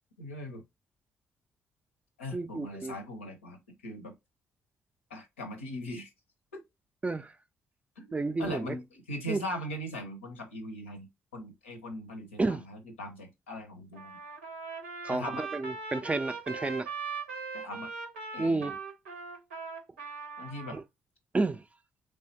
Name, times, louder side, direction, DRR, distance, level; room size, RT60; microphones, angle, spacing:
voice 1, 0.2-0.6 2.2-4.2 5.1-6.1 6.5-6.6 8.0-14.2 15.1-15.4 17.5-17.9 18.3-18.7 20.4-20.8, left 1 dB, 80° left, 0.6 m, -40 dB
voice 2, 2.3-2.9 7.0-7.4 8.1-8.8 9.3-9.4 12.4-12.6 15.0-16.9 18.4-18.8 20.7-20.8 21.3-21.6, right 3 dB, 20° right, 0.3 m, -31 dB
Trumpet, 14.0-20.8, right 5 dB, 80° right, 0.6 m, -40 dB
3.3 x 3.3 x 2.7 m
figure-of-eight pair, 40°, 7 cm